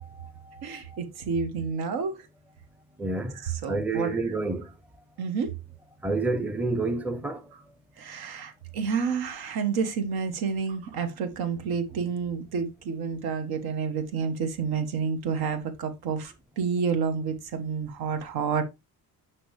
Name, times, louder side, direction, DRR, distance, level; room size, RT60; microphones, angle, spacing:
voice 1, 0.0-1.0 3.0-3.4 3.7-4.7 6.0-7.5, right 3 dB, 5° right, 0.5 m, -29 dB
voice 2, 0.6-2.2 3.3-4.2 5.2-5.5 8.0-18.6, right 6 dB, 90° right, 1.4 m, -29 dB
6.2 x 5.9 x 3.1 m
cardioid pair, 140°, 36 cm